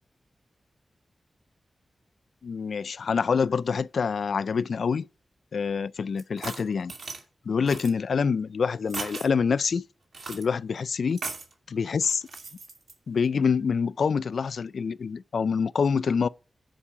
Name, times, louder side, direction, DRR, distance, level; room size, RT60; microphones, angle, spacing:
voice 1, 2.4-5.1 5.5-6.9 7.5-9.8 10.3-11.2 11.7-12.2 13.1-16.3, left 5 dB, 75° left, 0.3 m, -26 dB
sound 1, 6.2-7.2 7.7-7.9 8.9-9.3 10.1-10.4 11.2-11.5 12.0-12.9, right 4 dB, 70° right, 2.3 m, -37 dB
10.0 x 4.7 x 5.8 m
wide cardioid pair, 115°, 0 cm